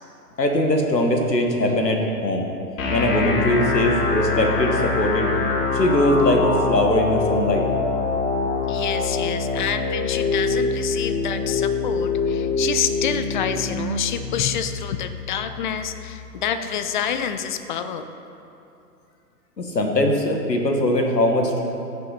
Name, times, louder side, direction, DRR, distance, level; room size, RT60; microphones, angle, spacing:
voice 1, 0.4-2.5 2.9-5.3 5.7-7.7 19.6-21.6, left 1 dB, 85° left, 3 dB, 1.6 m, -21 dB
sound 1, 2.8-16.7, left 4 dB, 50° left, 1.7 m, -25 dB
voice 2, 8.7-18.0, left 8 dB, 30° left, 10 dB, 0.5 m, -28 dB
15.0 x 6.7 x 4.2 m, 2.8 s
figure-of-eight pair, 115°, 48 cm